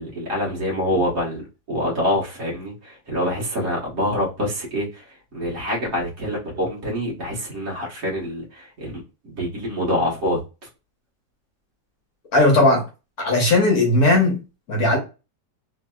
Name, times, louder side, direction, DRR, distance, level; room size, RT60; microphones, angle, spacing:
voice 1, 0.0-1.4 1.7-10.4, equal, 55° right, 1.5 m, -26 dB
voice 2, 12.3-12.9 13.2-14.4 14.7-15.0, left 2 dB, 60° left, 1.4 m, -17 dB
3.4 x 2.7 x 2.2 m
omnidirectional pair, 1.9 m